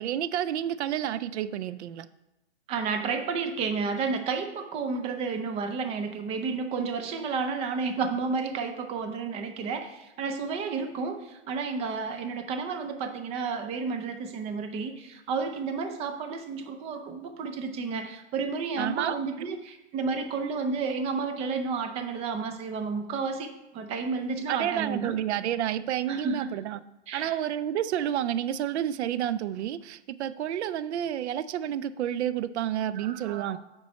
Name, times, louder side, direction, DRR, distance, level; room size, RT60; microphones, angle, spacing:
voice 1, 0.0-2.1 18.8-19.2 24.5-26.8 27.1-33.6, right 11 dB, 75° right, 15 dB, 0.5 m, -30 dB
voice 2, 2.7-25.2 26.1-26.5 27.1-27.4 32.9-33.6, right 4 dB, 20° right, 6 dB, 0.5 m, -31 dB
7.6 x 4.5 x 4.3 m, 0.95 s
hypercardioid pair, 135°, 35 cm